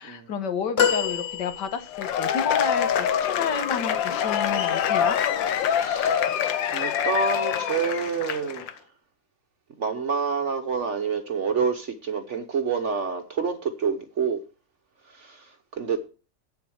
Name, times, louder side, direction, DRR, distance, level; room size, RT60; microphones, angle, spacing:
voice 1, 0.0-5.2, left 6 dB, 70° left, 1.6 m, -30 dB
sound 1, 0.8-2.2 2.9-3.0, left 7 dB, 40° left, 1.2 m, -25 dB
Cheering / Applause / Crowd, 1.9-8.7, left 9 dB, 85° left, 1.6 m, -25 dB
voice 2, 5.7-6.3 6.7-8.7 9.8-14.4 15.1-16.0, right 5 dB, 50° right, 1.0 m, -28 dB
8.7 x 7.3 x 6.3 m
omnidirectional pair, 2.0 m